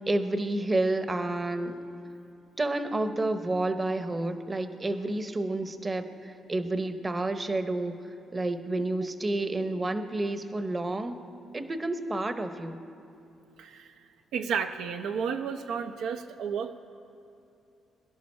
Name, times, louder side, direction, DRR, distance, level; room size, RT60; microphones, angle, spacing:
voice 1, 0.1-1.8 2.6-8.0 8.3-11.2 11.5-12.8, right 2 dB, 25° right, 9 dB, 0.8 m, -30 dB
voice 2, 13.6-13.9 14.3-16.8, right 6 dB, 80° right, 6 dB, 0.6 m, -32 dB
22.5 x 11.0 x 4.3 m, 2.7 s
cardioid pair, 90°, 0 cm